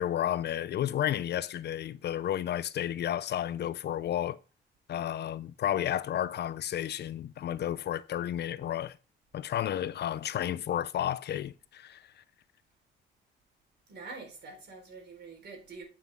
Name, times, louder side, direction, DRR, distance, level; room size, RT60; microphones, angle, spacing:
voice 1, 0.0-4.4 4.9-9.0 9.3-12.2, left 11 dB, 60° left, 0.5 m, -32 dB
voice 2, 13.9-15.8, right 4 dB, 60° right, 4.2 m, -45 dB
9.5 x 5.8 x 3.5 m
cardioid pair, 90°, 20 cm